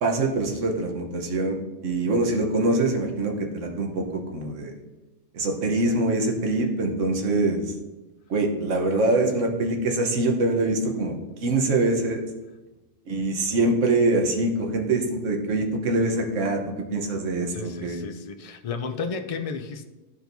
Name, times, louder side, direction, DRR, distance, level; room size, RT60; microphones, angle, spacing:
voice 1, 0.0-4.7 5.3-7.6 8.3-11.1 11.4-12.2 13.1-16.6 16.9-18.0, right 2 dB, 75° right, 2 dB, 1.3 m, -24 dB
voice 2, 17.5-19.8, left 5 dB, 70° left, 7 dB, 0.3 m, -33 dB
12.5 x 4.4 x 2.7 m, 1.1 s
omnidirectional pair, 1.3 m